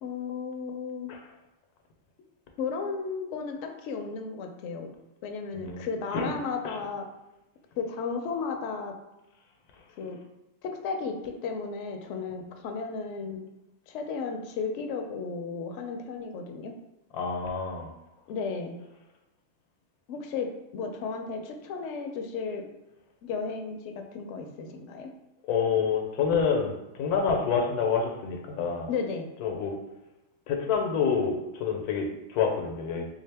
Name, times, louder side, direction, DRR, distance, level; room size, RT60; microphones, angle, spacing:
voice 1, 0.0-1.1 2.6-4.9 5.2-7.1 7.8-8.9 10.0-10.2 10.6-13.4 13.9-16.7 18.3-18.8 20.1-22.6 23.2-25.1 28.9-29.3, left 5 dB, 65° left, 4 dB, 0.8 m, -34 dB
voice 2, 17.1-17.9 25.5-28.9 29.4-29.7 30.5-33.1, left 6 dB, 90° left, 2 dB, 1.2 m, -27 dB
3.5 x 2.7 x 3.3 m, 0.96 s
omnidirectional pair, 1.6 m